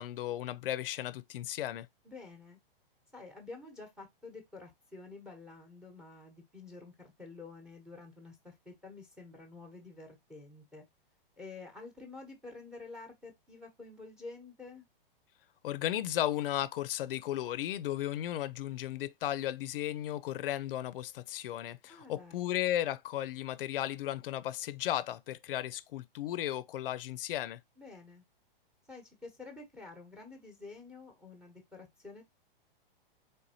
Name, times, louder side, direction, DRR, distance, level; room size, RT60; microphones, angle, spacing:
voice 1, 0.0-1.9 15.6-27.6, left 12 dB, 70° left, 0.5 m, -35 dB
voice 2, 2.0-2.6 3.1-10.8 11.4-14.8 21.9-22.5 27.8-28.2 28.9-32.2, left 3 dB, ahead, 0.9 m, -49 dB
4.0 x 3.4 x 2.8 m
hypercardioid pair, 150°, 29 cm